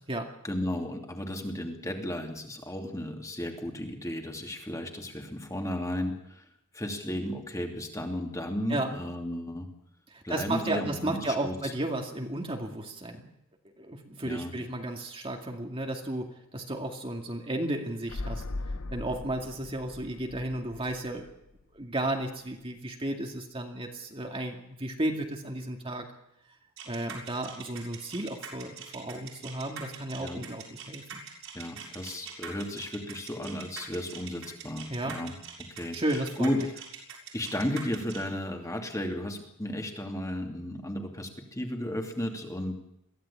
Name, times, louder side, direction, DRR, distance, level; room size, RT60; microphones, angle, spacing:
voice 1, 0.4-6.4 6.7-9.7 10.2-11.7 14.2-14.5 30.2-30.4 31.5-35.3 35.7-36.0 36.4-36.6 37.3-42.8, left 1 dB, 15° left, 2 dB, 2.7 m, -34 dB
voice 2, 10.1-13.3 13.8-18.4 18.9-21.3 21.7-26.1 26.9-31.2 34.9-35.1 35.9-36.7, right 1 dB, 25° right, 2 dB, 2.3 m, -33 dB
sound 1, 18.1-21.8 22.1-22.2, left 2 dB, 85° left, 1.0 m, -39 dB
sound 2, 26.8-38.3, right 7 dB, 75° right, 6.6 m, -43 dB
22.5 x 15.5 x 8.7 m, 0.81 s
head